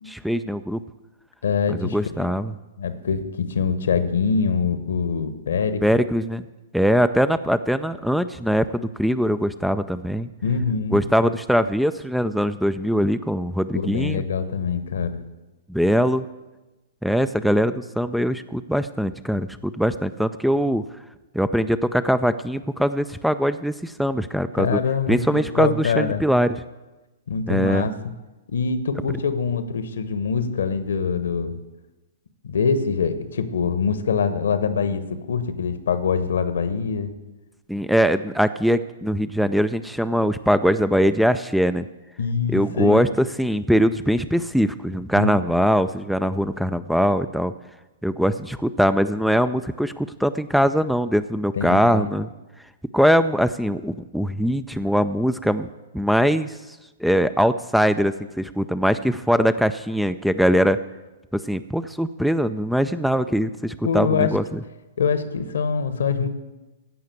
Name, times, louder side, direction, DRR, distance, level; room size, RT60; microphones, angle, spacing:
voice 1, 0.1-0.8 1.7-2.5 5.8-6.5 6.7-10.3 10.9-14.2 15.7-16.2 17.0-20.8 21.3-24.8 25.1-26.6 27.5-27.9 37.7-41.9 42.5-47.5 48.0-52.3 52.9-55.7 55.9-56.6 57.0-60.8 61.3-64.6, equal, ahead, 12 dB, 0.4 m, -21 dB
voice 2, 1.4-2.3 2.8-5.8 10.4-11.0 13.7-15.2 24.5-26.2 27.3-27.9 28.5-31.5 32.4-37.1 42.2-43.1 45.1-45.3 51.6-52.1 63.8-64.3 65.0-66.3, left 5 dB, 65° left, 11 dB, 1.1 m, -24 dB
15.5 x 5.7 x 8.4 m, 1.1 s
figure-of-eight pair, 110°, 0 cm